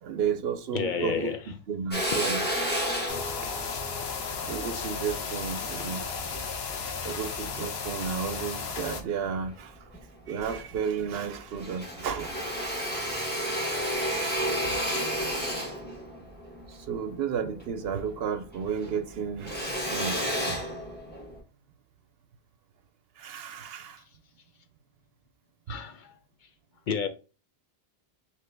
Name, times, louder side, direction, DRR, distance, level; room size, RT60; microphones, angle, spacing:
voice 1, 0.0-2.5 4.0-6.1 7.0-9.9 10.3-13.1 13.7-15.1 16.7-20.9 23.2-24.0, right 7 dB, 75° right, 0.8 m, -33 dB
voice 2, 0.7-1.4 25.7-26.1 26.9-27.1, left 7 dB, 60° left, 0.6 m, -30 dB
Drill, 1.9-6.4 7.0-8.2 8.6-9.6 9.9-10.0 10.3-11.3 11.5-18.2 18.5-21.4, equal, 10° left, 1.1 m, -32 dB
sound 1, 3.1-9.0, left 5 dB, 85° left, 1.0 m, -34 dB
3.8 x 3.1 x 3.3 m
omnidirectional pair, 1.0 m